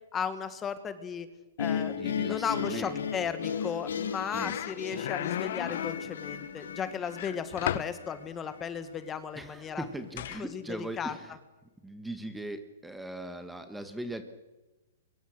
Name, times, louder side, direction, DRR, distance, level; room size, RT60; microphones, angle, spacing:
voice 1, 0.1-1.3 1.6-9.8 10.4-11.2, left 7 dB, 15° left, 11 dB, 1.6 m, -35 dB
sound 1, 1.6-8.7, left 7 dB, 80° left, 2.2 m, -35 dB
voice 2, 1.8-3.1 4.3-4.5 9.3-11.4 11.8-14.2, right 1 dB, 5° right, 8 dB, 1.4 m, -39 dB
sound 2, 3.9-4.1 4.4-6.1 7.1-8.0 10.2-10.4, left 11 dB, 55° left, 0.9 m, -34 dB
23.0 x 22.0 x 6.6 m, 1.1 s
hypercardioid pair, 150°, 0 cm